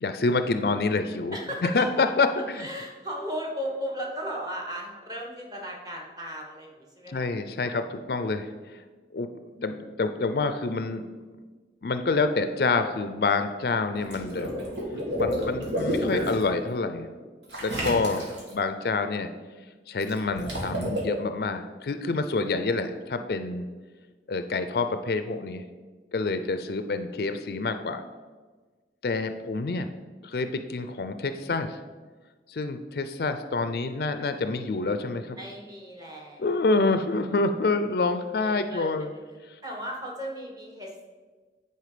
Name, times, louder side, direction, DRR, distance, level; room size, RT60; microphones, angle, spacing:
voice 1, 0.0-1.4 1.6-2.7 7.1-8.8 9.1-9.3 9.6-11.1 11.8-14.5 15.2-17.1 17.6-18.3 18.5-19.3 19.9-23.7 24.3-25.6 26.1-28.0 29.0-29.9 30.2-31.8 32.5-35.4 36.4-39.1 39.5-39.6, left 3 dB, 55° left, 9 dB, 0.4 m, -27 dB
voice 2, 0.5-1.0 1.3-2.0 2.6-7.3 22.5-22.8 35.4-36.5 38.4-39.2 39.6-41.1, equal, 20° right, -1 dB, 1.3 m, -36 dB
Water / Liquid, 13.9-16.4 17.5-18.5 20.0-21.0, equal, 85° right, 2.3 m, -30 dB
9.7 x 4.5 x 5.0 m, 1.4 s
head